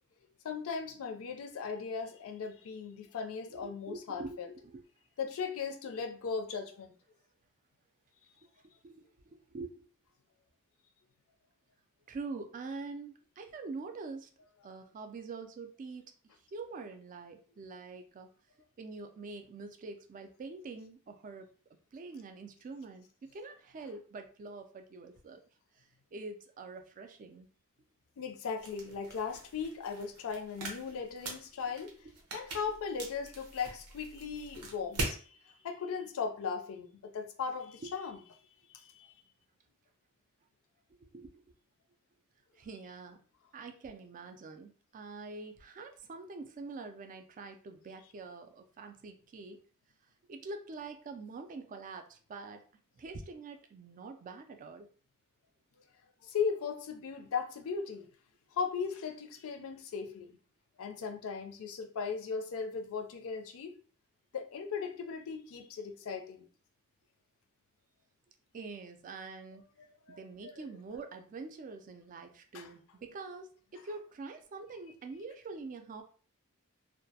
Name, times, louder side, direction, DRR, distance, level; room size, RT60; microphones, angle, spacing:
voice 1, 0.4-4.5 5.2-6.9 28.2-31.9 32.3-38.2 38.7-39.1 56.2-58.1 58.5-60.4 60.8-63.7 64.3-66.5 70.1-70.2 70.4-70.5 72.5-72.7, left 6 dB, 65° left, 0.4 m, -37 dB
voice 2, 3.5-4.8 8.8-9.1 9.3-9.9 12.1-14.3 14.6-16.1 16.5-18.3 18.8-21.5 21.9-25.4 25.7-27.5 41.1-41.4 42.6-43.2 43.5-49.6 50.3-52.6 52.9-54.9 68.5-69.6 70.1-76.0, right 3 dB, 35° right, 0.3 m, -45 dB
sound 1, 28.6-35.2, right 2 dB, 75° right, 0.7 m, -42 dB
2.2 x 2.1 x 2.7 m
head